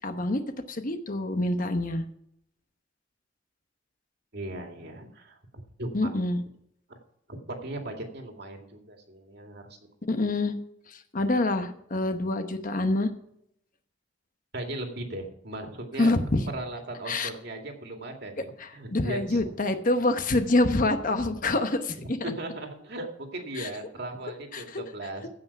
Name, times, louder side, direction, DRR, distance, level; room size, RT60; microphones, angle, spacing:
voice 1, 0.0-0.4 0.7-2.0 5.9-6.4 10.1-10.6 10.9-13.1 16.0-16.4 17.1-17.3 18.4-22.3 23.6-23.7 24.5-24.8, left 2 dB, 45° left, 8 dB, 1.0 m, -26 dB
voice 2, 4.3-5.4 5.8-6.1 6.9-7.0 7.3-9.6 14.5-16.1 16.5-18.5 18.7-19.4 22.2-25.3, right 1 dB, 60° right, 3 dB, 2.2 m, -37 dB
15.5 x 5.7 x 5.9 m, 0.73 s
head